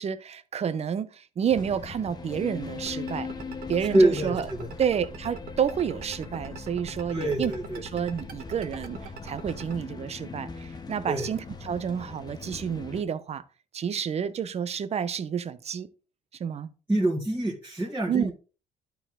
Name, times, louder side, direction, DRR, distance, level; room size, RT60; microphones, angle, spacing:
voice 1, 0.0-3.3 3.7-4.4 4.8-7.5 7.9-13.4 13.7-15.9 16.4-16.7 18.1-18.3, right 8 dB, 40° right, 0.8 m, -29 dB
sound 1, 1.5-13.0, left 4 dB, 25° left, 1.0 m, -40 dB
sound 2, 2.9-9.7, right 5 dB, 60° right, 1.6 m, -41 dB
voice 2, 3.9-4.7 7.1-7.8 11.0-11.3 16.9-18.3, right 1 dB, 15° right, 2.0 m, -25 dB
11.5 x 4.6 x 3.7 m
cardioid pair, 110°, 17 cm